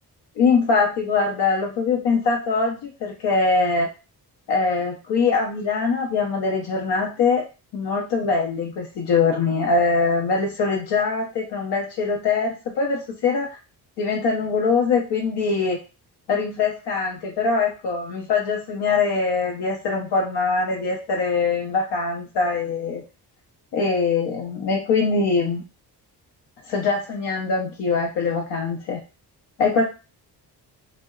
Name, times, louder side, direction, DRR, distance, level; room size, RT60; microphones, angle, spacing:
voice 1, 0.4-3.9 4.5-7.4 7.7-13.6 14.0-15.8 16.3-23.0 23.7-25.6 26.7-29.0 29.6-29.8, left 4 dB, 75° left, 0 dB, 0.6 m, -22 dB
2.7 x 2.1 x 2.3 m, 0.31 s
cardioid pair, 110°, 41 cm